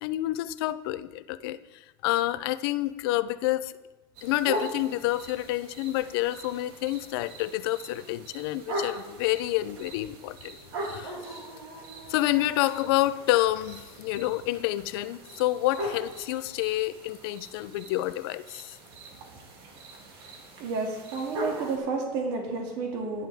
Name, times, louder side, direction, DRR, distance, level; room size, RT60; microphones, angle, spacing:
voice 1, 0.0-3.8 4.2-11.4 12.1-18.8, left 16 dB, 75° left, 15 dB, 0.5 m, -28 dB
sound 1, 4.1-21.8, right 1 dB, 80° right, 2.9 m, -40 dB
voice 2, 20.6-23.3, right 4 dB, 60° right, 0 dB, 2.3 m, -31 dB
13.5 x 11.0 x 3.5 m, 1.2 s
cardioid pair, 170°, 13 cm